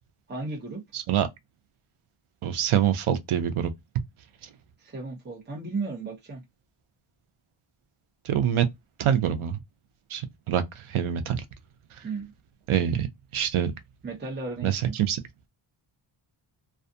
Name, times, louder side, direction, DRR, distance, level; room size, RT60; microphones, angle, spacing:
voice 1, 0.3-0.8 4.8-6.4 12.0-12.3 14.0-15.0, right 3 dB, 20° right, 0.8 m, -34 dB
voice 2, 0.9-1.3 2.4-3.7 8.2-8.7 9.0-9.6 10.1-11.4 12.7-13.1 13.3-13.7 14.6-15.2, right 9 dB, 85° right, 0.6 m, -25 dB
2.4 x 2.3 x 2.6 m
wide cardioid pair, 145°, 48 cm